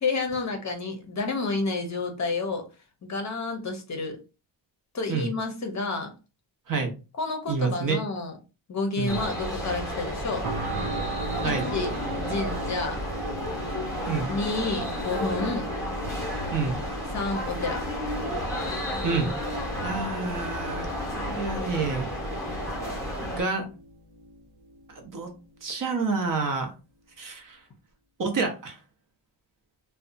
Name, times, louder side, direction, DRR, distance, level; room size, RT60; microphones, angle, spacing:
voice 1, 0.0-2.7 3.0-4.2 4.9-6.1 7.2-8.4 8.7-10.5 11.4-13.0 14.3-15.7 17.1-17.8, left 3 dB, 35° left, 0.6 m, -30 dB
voice 2, 7.5-8.0 9.0-9.2 11.4-11.7 14.1-14.3 16.5-16.8 19.0-19.3 19.8-20.9 21.2-22.1 23.2-23.7 24.9-25.3 25.6-26.7 27.2-27.6 28.2-28.8, right 4 dB, 45° right, 0.7 m, -28 dB
sound 1, 9.1-23.4, left 1 dB, 5° left, 0.9 m, -32 dB
sound 2, 10.4-25.4 25.9-26.1, right 3 dB, 80° right, 0.8 m, -40 dB
2.7 x 2.2 x 2.5 m
cardioid pair, 130°, 47 cm